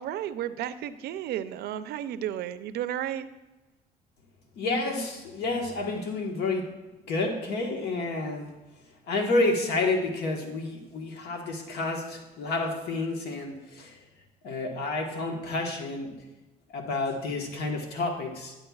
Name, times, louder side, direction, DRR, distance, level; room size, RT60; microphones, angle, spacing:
voice 1, 0.0-3.3, right 11 dB, 70° right, 12 dB, 0.5 m, -33 dB
voice 2, 4.6-6.7 7.1-8.5 9.1-14.0 14.4-16.2 16.7-18.5, left 2 dB, 75° left, 2 dB, 1.4 m, -30 dB
9.8 x 9.7 x 2.4 m, 1.1 s
cardioid pair, 110°, 17 cm